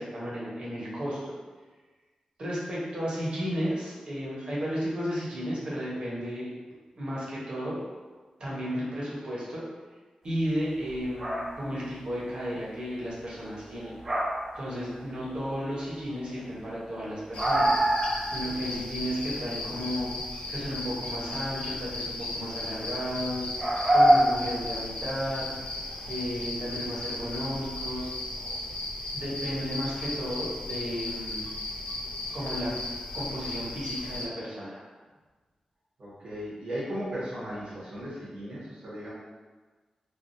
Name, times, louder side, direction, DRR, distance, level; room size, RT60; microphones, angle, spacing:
voice 1, 0.0-1.3 2.4-6.5 7.0-7.8 8.4-9.6 10.2-13.9 14.6-17.8 18.3-20.1 20.5-23.5 23.9-25.4 26.1-28.1 29.1-31.4 32.3-32.7 33.1-34.8, equal, 55° right, -6 dB, 1.0 m, -33 dB
sound 1, 10.9-11.6 13.7-14.6 14.9-15.3 15.8-15.9 16.2-16.3 16.5-16.6 16.9-18.4 18.6-18.7 19.2-19.5 21.9-22.0 23.6-25.0 25.7-26.1 27.9-28.0 28.4-28.6, right 1 dB, 20° right, 0.4 m, -25 dB
sound 2, 17.3-34.3, left 2 dB, 60° left, 0.4 m, -36 dB
voice 2, 36.0-39.1, equal, 80° right, -9 dB, 1.3 m, -36 dB
3.4 x 2.3 x 2.6 m, 1.3 s
wide cardioid pair, 135°, 2 cm